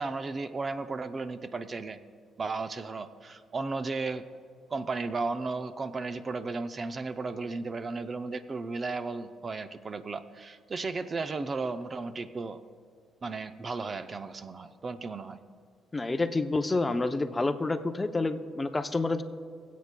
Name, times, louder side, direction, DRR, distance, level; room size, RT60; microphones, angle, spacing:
voice 1, 0.0-2.1 2.4-4.3 4.7-12.6 13.2-15.4, right 3 dB, 35° right, 11 dB, 0.5 m, -34 dB
voice 2, 15.9-19.2, left 3 dB, 20° left, 9 dB, 0.5 m, -28 dB
23.0 x 8.3 x 2.2 m, 2.1 s
cardioid pair, 90°, 0 cm